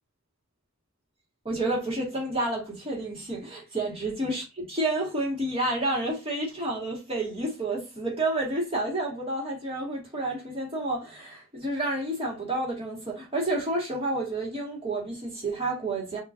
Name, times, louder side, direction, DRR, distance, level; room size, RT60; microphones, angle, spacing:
voice 1, 1.4-16.2, right 2 dB, 30° right, 1.9 m, -30 dB
5.6 x 2.9 x 2.6 m
head